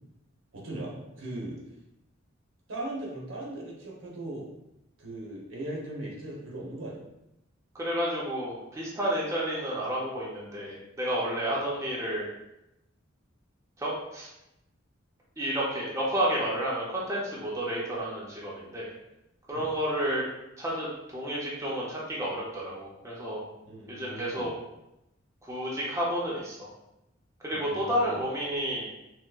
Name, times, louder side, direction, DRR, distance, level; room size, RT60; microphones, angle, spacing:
voice 1, 0.5-1.6 2.7-4.5 5.0-7.0 19.5-19.7 23.6-24.5 27.5-28.2, right 1 dB, 70° right, -3 dB, 0.9 m, -39 dB
voice 2, 7.7-12.3 13.8-14.3 15.4-18.9 19.5-20.2 20.6-23.4 23.9-24.5 25.4-26.7 27.4-28.9, equal, 15° right, -6 dB, 0.6 m, -31 dB
4.4 x 2.0 x 2.4 m, 0.88 s
head